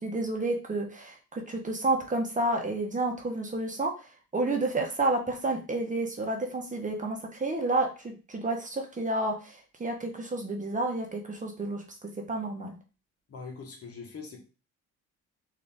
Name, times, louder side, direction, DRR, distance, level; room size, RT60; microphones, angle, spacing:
voice 1, 0.0-12.7, right 2 dB, 25° right, 2 dB, 1.1 m, -30 dB
voice 2, 13.3-14.4, left 5 dB, 50° left, 2 dB, 1.3 m, -42 dB
3.9 x 2.8 x 3.6 m, 0.33 s
cardioid pair, 90°, 30 cm